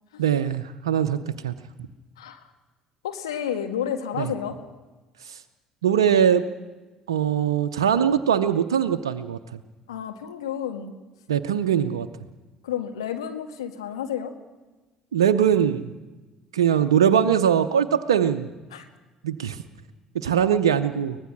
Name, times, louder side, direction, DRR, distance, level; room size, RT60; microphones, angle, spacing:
voice 1, 0.2-1.5 4.2-4.3 5.3-5.4 5.8-6.4 7.1-9.4 11.3-12.1 15.1-15.9 16.5-18.5 19.2-19.6 20.1-21.2, right 8 dB, 85° right, 8 dB, 0.7 m, -21 dB
voice 2, 3.0-4.6 9.9-10.9 12.6-14.3 18.7-18.8, left 9 dB, 85° left, 6 dB, 1.5 m, -31 dB
23.5 x 19.5 x 6.2 m, 1.2 s
hypercardioid pair, 60°, 3 cm